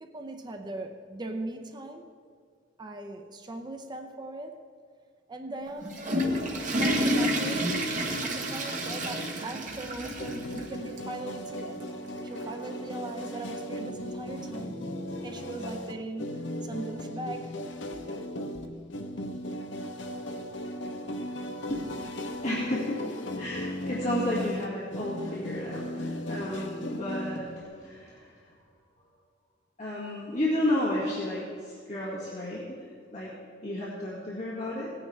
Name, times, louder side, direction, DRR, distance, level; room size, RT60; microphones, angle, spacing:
voice 1, 0.0-2.1 2.8-4.6 5.3-6.0 6.8-7.7 8.2-12.0 12.2-14.9 15.2-16.3 16.6-17.7, right 2 dB, 25° right, 4 dB, 0.6 m, -39 dB
Water / Toilet flush, 5.7-10.7 11.0-11.1 11.8-11.9 13.2-13.3, equal, 45° right, 1.4 m, -29 dB
sound 1, 10.2-27.6, left 1 dB, 65° left, 0.8 m, -36 dB
voice 2, 22.4-23.0 23.3-28.3 29.8-32.8 33.1-33.3 33.6-34.9, left 1 dB, 40° left, -7 dB, 2.0 m, -32 dB
17.0 x 9.7 x 3.3 m, 2.1 s
head